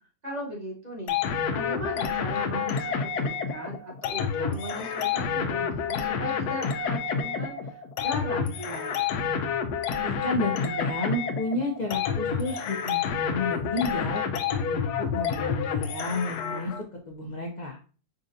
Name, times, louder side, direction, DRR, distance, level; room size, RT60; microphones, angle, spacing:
voice 1, 0.2-1.2 1.5-9.0, equal, 30° right, -3 dB, 1.2 m, -37 dB
sound 1, 1.1-16.8, left 6 dB, 85° left, 1.1 m, -29 dB
voice 2, 10.0-14.2 14.6-14.9 15.1-17.8, left 2 dB, 65° left, 0 dB, 0.4 m, -31 dB
5.2 x 2.4 x 2.6 m, 0.37 s
omnidirectional pair, 1.7 m